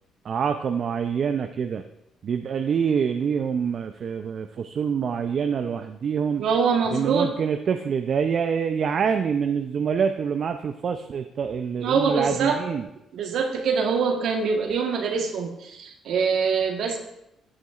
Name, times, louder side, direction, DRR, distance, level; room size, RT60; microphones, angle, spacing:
voice 1, 0.2-1.8 2.2-6.4 6.9-12.9, right 7 dB, 55° right, 7 dB, 0.4 m, -26 dB
voice 2, 6.4-7.3 11.8-12.6 13.1-17.0, right 5 dB, 75° right, 3 dB, 1.2 m, -24 dB
14.0 x 7.1 x 2.4 m, 0.86 s
supercardioid pair, 65°, 0 cm